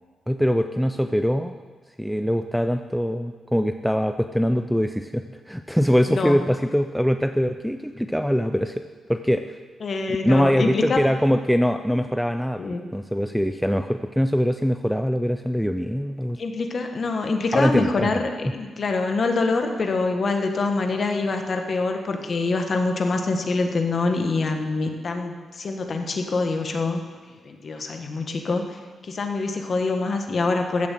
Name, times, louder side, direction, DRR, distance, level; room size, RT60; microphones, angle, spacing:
voice 1, 0.3-1.5 2.0-8.8 9.1-9.6 10.2-12.6 12.9-16.4 17.5-18.2, equal, ahead, 7 dB, 0.4 m, -23 dB
voice 2, 6.1-6.4 9.8-11.0 12.6-12.9 16.4-27.0 27.4-28.8 29.0-30.9, left 3 dB, 40° left, 4 dB, 1.3 m, -25 dB
14.0 x 7.2 x 7.5 m, 1.4 s
wide cardioid pair, 165°, 0 cm